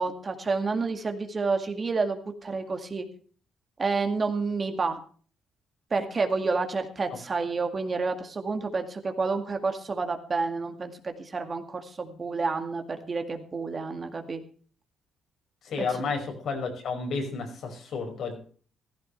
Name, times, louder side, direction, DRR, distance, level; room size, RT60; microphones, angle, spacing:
voice 1, 0.0-3.1 3.8-5.0 5.9-14.4 15.8-15.9, right 4 dB, 35° right, 6 dB, 2.1 m, -29 dB
voice 2, 15.6-18.4, left 4 dB, 65° left, 3 dB, 5.4 m, -31 dB
15.5 x 14.5 x 3.3 m, 0.43 s
cardioid pair, 90°, 0 cm